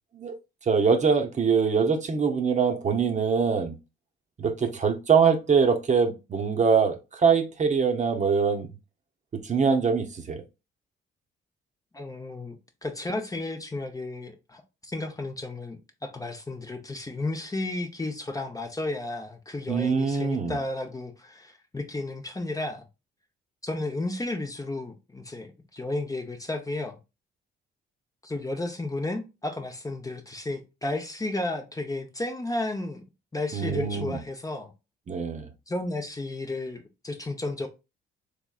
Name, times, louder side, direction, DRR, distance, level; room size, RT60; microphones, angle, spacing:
voice 1, 0.7-3.7 4.4-8.7 9.3-10.4 19.7-20.6 33.5-34.2 35.1-35.5, right 6 dB, 35° right, 0.7 m, -23 dB
voice 2, 11.9-22.8 23.6-27.0 28.2-33.0 33.3-34.7 35.7-37.7, left 2 dB, 15° left, 0.7 m, -33 dB
3.5 x 3.4 x 2.3 m
cardioid pair, 90°, 20 cm